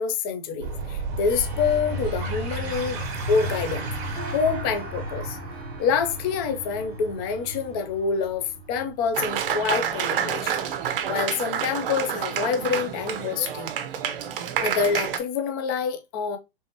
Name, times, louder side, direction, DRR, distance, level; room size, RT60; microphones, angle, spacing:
voice 1, 0.0-3.0 3.3-3.9 4.3-5.4 5.8-10.6 11.1-13.7 14.6-16.4, left 6 dB, 25° left, 0.3 m, -26 dB
sound 1, 0.6-11.7, right 2 dB, 30° right, 1.1 m, -34 dB
Harp, 1.2-9.0, right 3 dB, 5° left, 0.8 m, -44 dB
Applause, 9.1-15.2, right 9 dB, 60° right, 0.6 m, -28 dB
3.3 x 2.8 x 2.9 m
hypercardioid pair, 135°, 31 cm